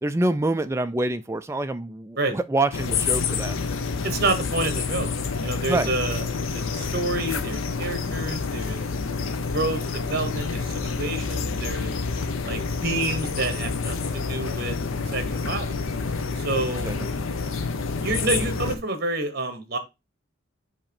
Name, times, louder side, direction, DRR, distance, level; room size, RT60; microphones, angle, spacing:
voice 1, 0.0-3.6 5.7-5.9 16.8-17.1, right 2 dB, 15° right, 0.3 m, -26 dB
sound 1, 2.7-18.8, left 4 dB, 75° left, 0.7 m, -28 dB
voice 2, 4.0-5.1 5.4-6.2 6.5-8.8 9.5-11.9 12.5-14.8 15.0-15.8 16.3-16.9 18.0-19.8, right 2 dB, 50° right, 1.1 m, -28 dB
7.5 x 3.0 x 4.4 m
head